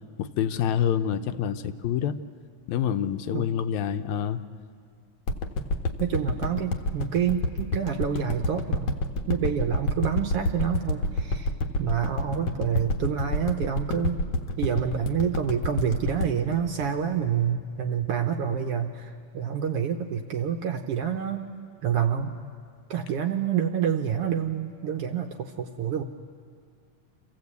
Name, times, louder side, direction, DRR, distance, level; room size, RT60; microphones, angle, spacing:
voice 1, 0.2-2.1 2.7-4.4, left 9 dB, 80° left, 9 dB, 2.0 m, -27 dB
sound 1, 5.3-17.6 18.0-18.1, left 2 dB, 55° left, 1.6 m, -28 dB
voice 2, 6.0-9.0 9.3-11.5 11.8-14.2 14.6-21.4 21.8-22.4 22.9-26.0, right 8 dB, 70° right, 5 dB, 1.5 m, -27 dB
27.5 x 15.5 x 8.3 m, 2.2 s
omnidirectional pair, 3.3 m